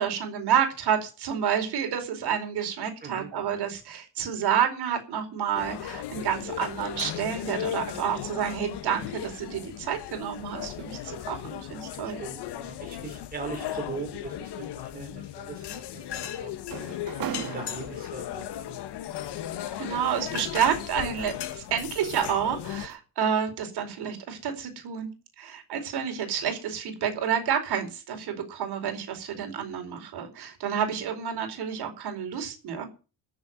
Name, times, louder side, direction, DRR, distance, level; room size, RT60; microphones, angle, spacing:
voice 1, 0.0-12.2 19.8-32.9, right 8 dB, 75° right, 5 dB, 4.6 m, -29 dB
sound 1, 5.5-22.9, left 11 dB, 85° left, 1.5 m, -36 dB
voice 2, 12.0-16.5 17.4-18.8, right 4 dB, 20° right, 2 dB, 4.1 m, -40 dB
sound 2, 15.6-18.5 19.6-21.6 22.0-22.3 22.7-22.9, right 9 dB, 60° right, 2.3 m, -40 dB
14.5 x 6.9 x 9.2 m, 0.33 s
cardioid pair, 180°, 40 cm